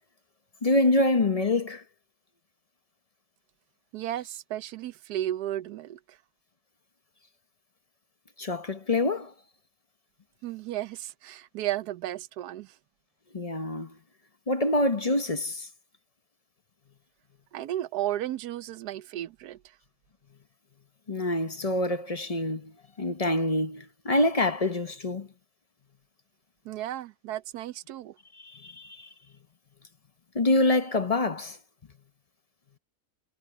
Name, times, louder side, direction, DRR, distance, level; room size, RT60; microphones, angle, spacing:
voice 1, 0.6-1.8 8.4-9.3 13.3-13.9 14.5-15.7 21.1-25.3 28.4-29.1 30.3-31.6, left 2 dB, 30° left, 0.8 m, -26 dB
voice 2, 3.9-6.0 10.4-12.7 17.5-19.6 26.6-28.1, right 13 dB, 75° right, 1.2 m, -34 dB
omnidirectional pair, 1.7 m